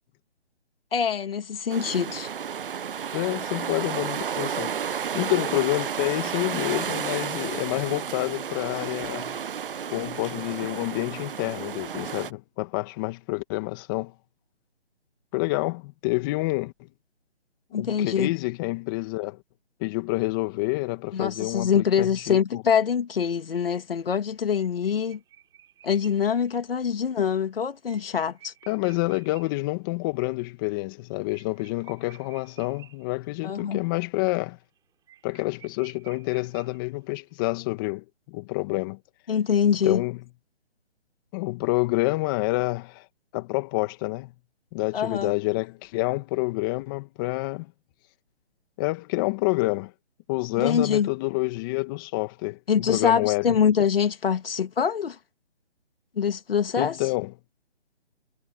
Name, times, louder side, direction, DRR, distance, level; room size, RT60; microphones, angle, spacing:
voice 1, 0.9-2.3 17.7-18.3 21.1-25.2 25.8-28.5 33.4-33.8 39.3-40.0 44.9-45.3 50.5-51.1 52.7-55.2 56.2-57.0, left 7 dB, 55° left, 2.5 m, -24 dB
sound 1, 1.7-12.3, right 7 dB, 50° right, 1.0 m, -32 dB
voice 2, 3.1-4.8 5.1-9.3 9.9-14.1 15.3-16.7 17.7-19.4 19.8-22.6 28.7-34.6 35.2-39.0 39.8-40.2 41.3-43.0 43.3-44.3 44.7-47.7 48.8-49.9 50.3-53.6 56.8-57.3, left 22 dB, 20° left, 2.1 m, -28 dB
sound 2, 23.5-29.7 30.0-30.1 30.4-30.5 30.8-33.4 33.8-34.1 34.4-34.5 34.8-34.9 35.1-37.2, right 11 dB, 10° right, 7.0 m, -54 dB
hypercardioid pair, 155°, 34 cm